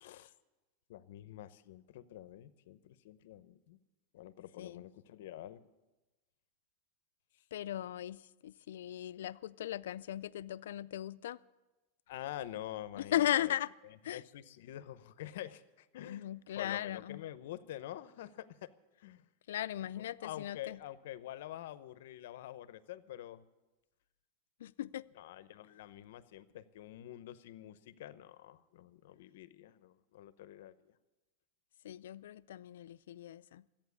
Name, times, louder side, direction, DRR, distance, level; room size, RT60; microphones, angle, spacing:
voice 1, 0.0-0.3 0.9-3.8 4.1-5.7 12.1-13.5 14.1-16.3 16.6-18.7 19.0-19.2 20.0-23.4 25.2-30.9, left 13 dB, 70° left, 0.8 m, -47 dB
voice 2, 7.5-11.4 12.9-13.7 14.0-14.2 16.0-17.2 19.5-20.8 24.6-25.0 31.8-33.7, left 12 dB, 85° left, 0.4 m, -37 dB
14.0 x 8.8 x 9.6 m
supercardioid pair, 155°, 0 cm